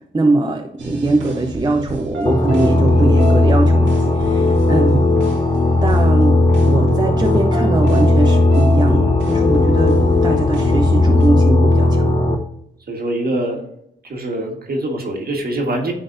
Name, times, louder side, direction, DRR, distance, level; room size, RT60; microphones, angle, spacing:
voice 1, 0.1-5.1 5.8-12.1, right 2 dB, 20° right, 2 dB, 0.7 m, -21 dB
sound 1, 0.8-11.3, equal, 80° right, 1.6 m, -28 dB
sound 2, 2.3-12.4, left 2 dB, 25° left, 0.8 m, -15 dB
voice 2, 12.9-13.7 14.0-15.9, right 1 dB, 55° right, 2 dB, 1.6 m, -24 dB
10.0 x 3.9 x 2.6 m, 0.73 s
cardioid pair, 70°, 19 cm